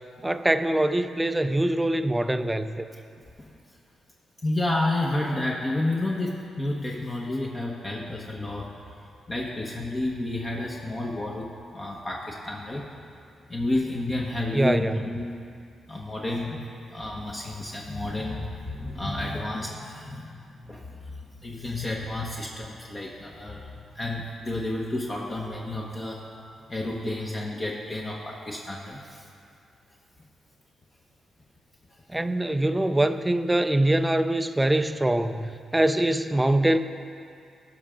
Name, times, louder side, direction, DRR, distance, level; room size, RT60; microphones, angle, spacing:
voice 1, 0.2-2.9 14.5-15.0 32.1-36.8, right 1 dB, 15° right, 10 dB, 0.4 m, -23 dB
voice 2, 4.4-8.7 9.3-12.9 13.5-15.3 15.9-26.3 26.7-29.2, left 2 dB, 30° left, -3 dB, 1.1 m, -31 dB
16.5 x 5.7 x 3.7 m, 2.4 s
cardioid pair, 75°, 0 cm